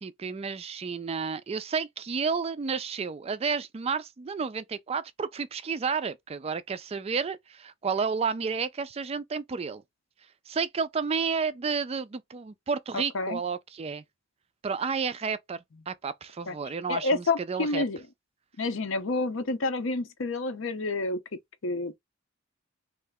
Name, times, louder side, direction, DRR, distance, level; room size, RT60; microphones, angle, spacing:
voice 1, 0.0-9.8 10.5-14.0 14.6-15.6 15.9-17.8, right 5 dB, 30° right, 0.3 m, -31 dB
voice 2, 12.9-13.4 16.5-16.6 16.9-18.0 18.6-21.2 21.6-22.0, left 3 dB, 70° left, 0.7 m, -29 dB
3.3 x 2.8 x 3.5 m
head